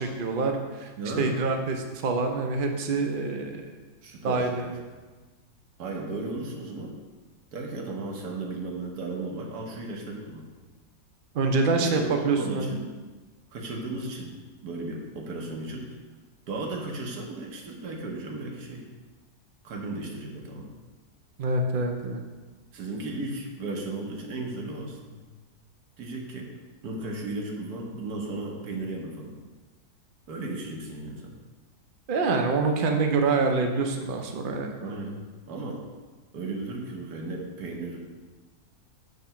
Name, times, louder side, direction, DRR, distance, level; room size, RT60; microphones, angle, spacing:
voice 1, 0.0-0.9 1.2-3.6 4.2-4.8 11.3-12.7 21.4-22.2 32.1-34.7, right 3 dB, 55° right, 4 dB, 0.6 m, -26 dB
voice 2, 1.0-1.4 4.0-4.7 5.8-7.0 7.5-10.5 11.7-12.9 13.5-15.9 16.5-18.9 19.6-20.7 22.7-25.2 26.0-26.5 26.8-29.4 30.3-31.4 34.8-35.8 36.3-38.0, right 2 dB, 85° right, 0 dB, 1.4 m, -35 dB
6.6 x 2.9 x 5.6 m, 1.3 s
omnidirectional pair, 1.6 m